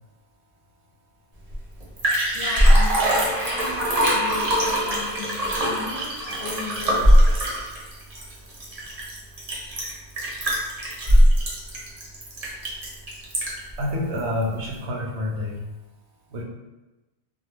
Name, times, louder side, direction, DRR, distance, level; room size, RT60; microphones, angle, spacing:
Liquid, 1.5-1.6 1.8-13.7 14.2-14.3, equal, 45° right, 0.6 m, -21 dB
voice 1, 2.3-7.4, left 3 dB, 65° left, -1 dB, 0.7 m, -35 dB
voice 2, 13.8-15.7 16.3-16.4, left 1 dB, 85° right, -1 dB, 0.9 m, -28 dB
2.3 x 2.1 x 3.2 m, 1.1 s
omnidirectional pair, 1.1 m